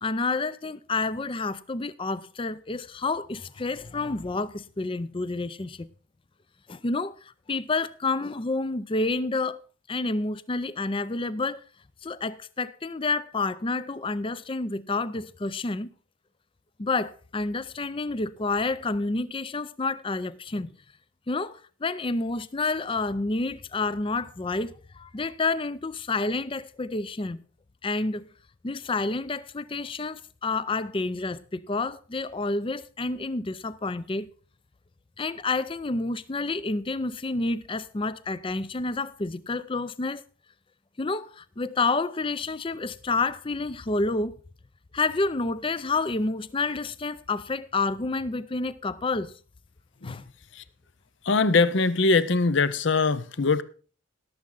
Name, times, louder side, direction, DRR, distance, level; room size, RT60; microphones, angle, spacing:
voice 1, 0.0-5.9 6.7-7.2 7.5-9.6 9.9-11.6 12.0-15.9 16.8-20.7 21.3-27.4 27.8-28.2 28.6-34.3 35.2-40.2 41.0-44.3 44.9-49.3 50.0-50.2, left 3 dB, 25° left, 0.5 m, -29 dB
voice 2, 51.2-53.6, left 4 dB, 60° left, 0.7 m, -22 dB
17.5 x 7.4 x 3.9 m
head